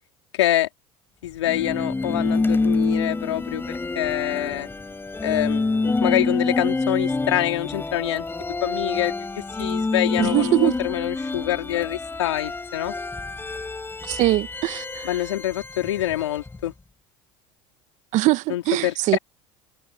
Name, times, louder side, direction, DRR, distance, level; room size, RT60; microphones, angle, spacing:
voice 1, 0.3-0.7 1.2-4.7 5.2-12.9 15.0-16.7 18.5-19.2, left 13 dB, 90° left, 3.8 m, -26 dB
sound 1, 1.5-16.6, left 3 dB, 15° left, 4.2 m, -27 dB
voice 2, 10.2-10.7 14.0-15.1 18.1-19.2, right 18 dB, 60° right, 1.3 m, -22 dB
hypercardioid pair, 85°, 14 cm